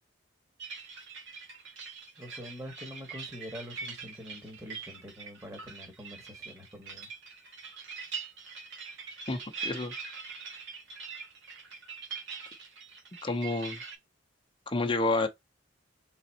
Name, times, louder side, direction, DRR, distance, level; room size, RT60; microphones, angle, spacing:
sound 1, 0.6-14.0, right 5 dB, 65° right, 1.9 m, -43 dB
voice 1, 2.2-7.1, equal, 15° right, 1.6 m, -45 dB
voice 2, 9.3-9.9 13.2-13.8 14.7-15.3, left 2 dB, 25° left, 0.8 m, -29 dB
4.0 x 4.0 x 2.9 m
head